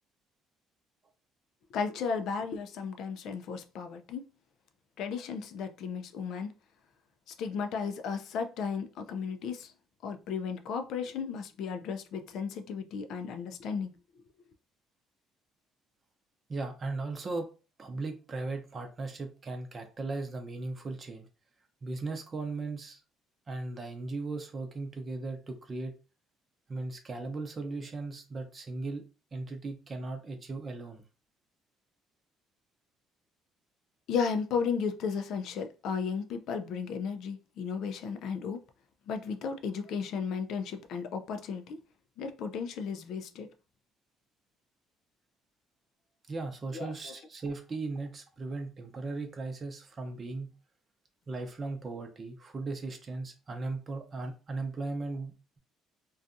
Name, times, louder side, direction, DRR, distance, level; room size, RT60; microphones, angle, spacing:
voice 1, 1.7-4.2 5.0-6.5 7.3-9.7 10.0-13.9 34.1-38.6 39.1-41.8 42.2-43.5 46.7-47.1, left 6 dB, 65° left, 0.4 m, -34 dB
voice 2, 16.5-17.5 17.8-21.3 21.8-23.0 23.5-25.9 26.7-29.0 29.3-31.0 46.3-50.5 51.3-55.6, right 3 dB, 30° right, 0.6 m, -37 dB
2.5 x 2.3 x 2.5 m
cardioid pair, 110°, 0 cm